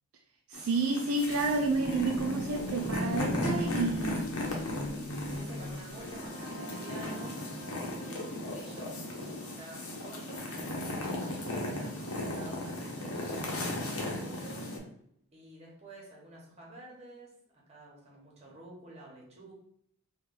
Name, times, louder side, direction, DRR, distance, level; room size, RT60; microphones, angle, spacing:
sound 1, 0.5-14.8, left 1 dB, 85° left, 0.9 m, -36 dB
voice 1, 0.5-4.3, right 3 dB, 70° right, 0.4 m, -30 dB
sound 2, 1.2-6.0, left 2 dB, 20° left, 0.5 m, -39 dB
voice 2, 5.3-7.4 8.0-10.5 11.2-14.7 15.3-19.5, right 2 dB, 30° right, 1.1 m, -50 dB
sound 3, 5.5-13.4, right 3 dB, 55° left, 1.2 m, -51 dB
3.2 x 2.4 x 3.8 m
head